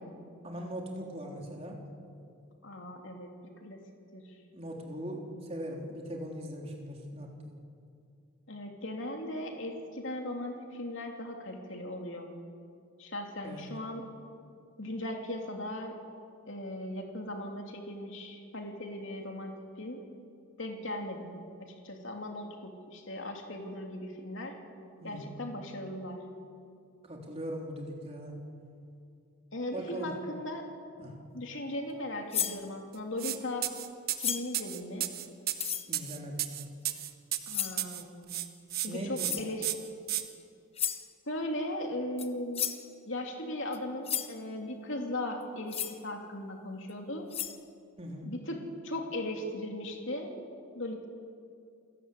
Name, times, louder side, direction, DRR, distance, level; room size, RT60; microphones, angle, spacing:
voice 1, 0.4-1.8 4.5-7.6 13.4-13.7 25.0-25.3 27.0-28.4 29.7-30.1 31.0-31.2 35.9-36.4 38.9-39.5 48.0-48.3, equal, 30° right, 0 dB, 3.7 m, -40 dB
voice 2, 2.6-3.3 3.6-3.8 4.1-4.2 8.5-12.3 13.0-14.0 14.8-15.9 16.5-20.0 20.6-21.3 21.8-24.6 25.0-26.2 29.5-30.7 31.3-33.6 34.2-35.1 37.5-38.2 38.8-39.7 41.3-42.7 43.1-47.2 48.2-48.6 48.8-50.3 50.7-51.1, left 1 dB, 60° left, 2 dB, 3.1 m, -38 dB
sound 1, 32.3-32.6 34.2-34.6 35.5-35.9 37.5-37.8 39.2-39.5 40.8-41.1 42.2-42.3 42.5-42.9 43.7-43.8 44.0-44.3 45.7-46.0 46.9-47.0 47.3-47.6, left 9 dB, 25° left, 1.1 m, -33 dB
sound 2, 33.2-33.4 33.6-38.0 38.3-38.9 39.2-39.3 39.6-40.2, right 13 dB, 45° right, 1.3 m, -33 dB
28.5 x 17.5 x 8.5 m, 2.4 s
head